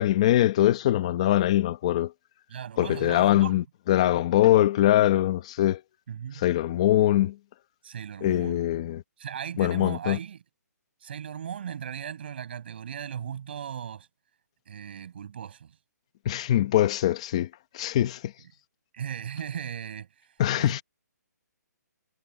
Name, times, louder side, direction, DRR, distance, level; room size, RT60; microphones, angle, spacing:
voice 1, 0.0-2.1 2.8-5.8 6.3-7.4 8.2-9.0 9.6-10.2 16.2-17.5 17.7-18.3 20.4-20.8, left 13 dB, 20° left, 1.0 m, -22 dB
voice 2, 2.5-3.6 6.1-6.4 7.8-8.6 9.2-10.4 11.0-14.1 14.7-15.8 18.9-20.8, right 8 dB, 35° right, 6.1 m, -37 dB
hypercardioid pair, 175°, 9 cm